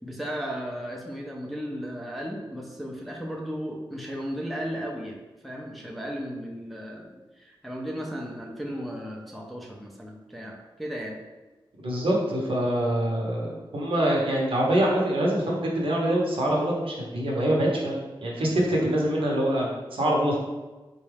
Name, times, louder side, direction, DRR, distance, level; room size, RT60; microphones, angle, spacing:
voice 1, 0.0-11.2 18.4-18.5 20.3-20.4, equal, ahead, -2 dB, 0.5 m, -35 dB
voice 2, 11.8-20.4, right 1 dB, 75° right, -3 dB, 0.9 m, -25 dB
4.0 x 2.3 x 3.3 m, 1.2 s
wide cardioid pair, 100°, 9 cm